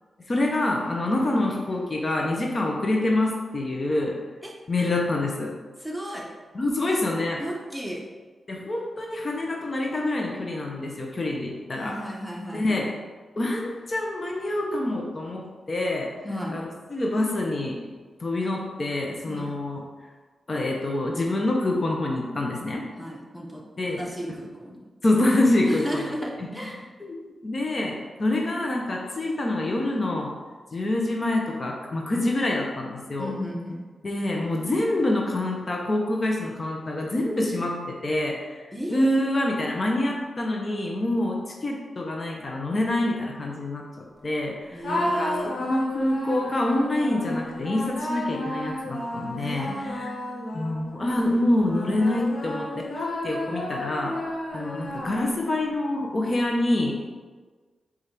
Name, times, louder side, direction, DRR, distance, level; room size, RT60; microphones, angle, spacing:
voice 1, 0.3-4.2 4.7-5.5 6.5-7.4 8.5-12.0 12.5-12.9 13.4-16.1 16.5-17.8 18.2-19.8 20.5-22.8 23.8-24.1 25.0-26.5 27.0-27.2 27.4-30.3 30.7-33.4 34.0-50.1 50.5-54.2 54.5-57.0, left 1 dB, 45° left, 0 dB, 0.6 m, -26 dB
voice 2, 5.8-6.3 7.4-8.0 11.8-12.9 16.2-16.6 19.3-19.5 23.0-24.8 25.6-26.8 33.2-33.8 38.7-39.0 44.7-45.6 49.4-50.5, equal, 5° right, -2 dB, 0.9 m, -34 dB
sound 1, 44.8-51.1 51.6-55.6, left 1 dB, 75° left, 0.9 m, -32 dB
4.8 x 2.4 x 4.3 m, 1.4 s
cardioid pair, 60°, 0 cm